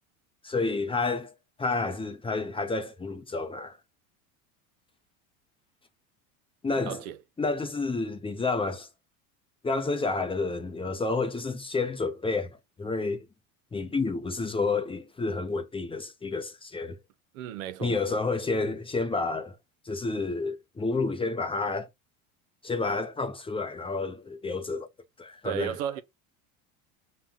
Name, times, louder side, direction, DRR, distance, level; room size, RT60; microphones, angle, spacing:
voice 1, 0.4-1.3 1.6-3.8 6.6-7.0 7.4-8.9 9.6-13.3 13.7-17.0 17.8-19.6 19.9-21.9 22.6-24.9 25.2-25.7, left 3 dB, 15° left, 0.5 m, -30 dB
voice 2, 6.8-7.2 17.3-18.2 25.4-26.0, right 11 dB, 80° right, 0.7 m, -34 dB
5.6 x 2.2 x 3.6 m
supercardioid pair, 100°, 41 cm